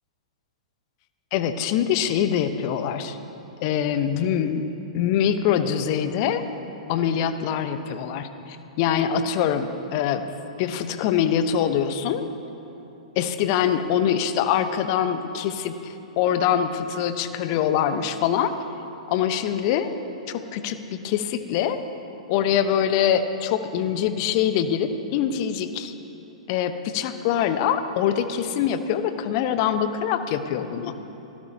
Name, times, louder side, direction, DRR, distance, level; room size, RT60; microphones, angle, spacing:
voice 1, 1.3-3.2 3.6-4.6 4.9-6.4 6.9-8.3 8.8-10.3 10.6-12.3 13.2-18.5 19.1-19.9 20.3-21.8 22.3-25.9 26.5-31.0, left 9 dB, 40° left, 10 dB, 1.1 m, -24 dB
26.5 x 17.0 x 2.9 m, 2.9 s
figure-of-eight pair, 105°, 3 cm